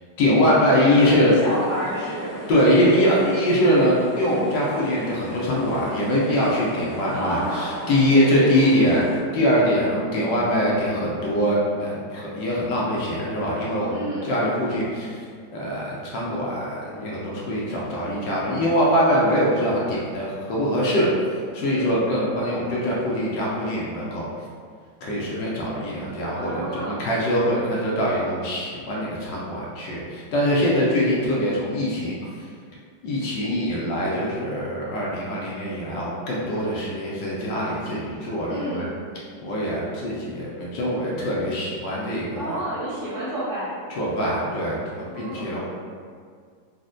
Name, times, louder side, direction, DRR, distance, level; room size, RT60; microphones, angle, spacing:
voice 1, 0.2-1.3 2.5-9.1 9.3-15.2 15.5-21.1 21.5-24.3 25.0-32.2 33.0-38.8 39.4-42.5 44.0-45.6, equal, 75° left, -5 dB, 1.1 m, -23 dB
voice 2, 0.7-2.4 7.1-8.9 13.9-14.4 21.6-22.0 26.3-27.0 38.5-39.0 42.3-43.7 45.0-45.6, right 1 dB, 30° left, -14 dB, 0.3 m, -30 dB
sound 1, 1.3-9.2, equal, 70° right, 0.4 m, -38 dB
4.1 x 2.0 x 2.5 m, 2.1 s
omnidirectional pair, 2.2 m